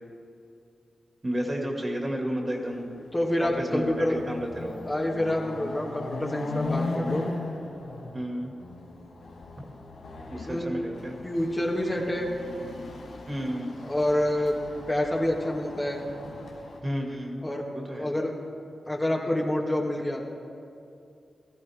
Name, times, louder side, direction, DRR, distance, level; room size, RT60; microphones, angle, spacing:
voice 1, 1.2-2.9 3.4-4.8 8.1-8.5 9.6-9.7 10.3-11.1 13.3-13.7 16.8-17.4 17.7-18.1, equal, 35° right, 0 dB, 2.3 m, -32 dB
Chatter / Car passing by / Motorcycle, 2.8-2.9 3.2-16.8, left 2 dB, 85° left, 1.3 m, -38 dB
voice 2, 3.1-4.2 4.8-7.2 10.5-10.7 11.2-12.3 13.8-14.6 14.9-16.0 17.4-17.6 18.0-18.3 18.9-20.2, left 1 dB, 25° left, -1 dB, 1.9 m, -27 dB
16.0 x 13.5 x 3.6 m, 2.6 s
supercardioid pair, 40°, 0 cm